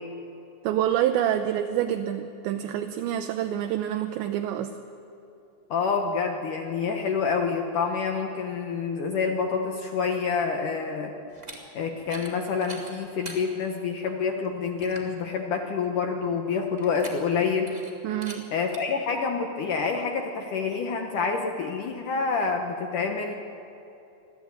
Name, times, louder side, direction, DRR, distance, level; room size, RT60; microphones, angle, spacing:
voice 1, 0.6-4.7 18.0-18.5, right 11 dB, 80° right, 7 dB, 2.9 m, -27 dB
voice 2, 5.7-11.1 11.7-17.7 18.5-23.3, left 5 dB, 70° left, 3 dB, 2.0 m, -27 dB
sound 1, 11.3-11.6 12.0-12.3 12.6-13.4 14.0-14.1 14.4-14.5 14.8-15.1 16.8-17.4 17.7-17.9 18.2-18.4 18.7-18.8, right 2 dB, 15° right, 1.6 m, -42 dB
25.5 x 16.0 x 9.0 m, 2.9 s
omnidirectional pair, 5.4 m